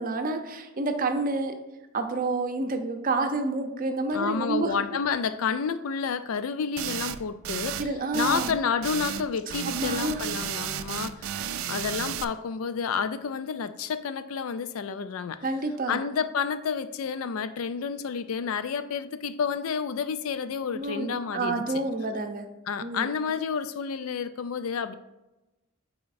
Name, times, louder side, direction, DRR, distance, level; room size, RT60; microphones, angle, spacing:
voice 1, 0.0-1.5 1.9-4.7 7.8-8.5 9.7-10.3 11.3-11.5 15.4-16.0 20.7-22.5 22.8-23.1, right 2 dB, 45° right, 0.7 m, -29 dB
voice 2, 4.1-7.9 8.1-15.4 15.9-21.7 22.7-24.9, left 6 dB, 85° left, 0.4 m, -30 dB
sound 1, 6.8-7.2 7.4-7.9 8.1-9.3 9.5-12.2, right 10 dB, 80° right, 0.4 m, -33 dB
9.5 x 4.2 x 2.6 m
head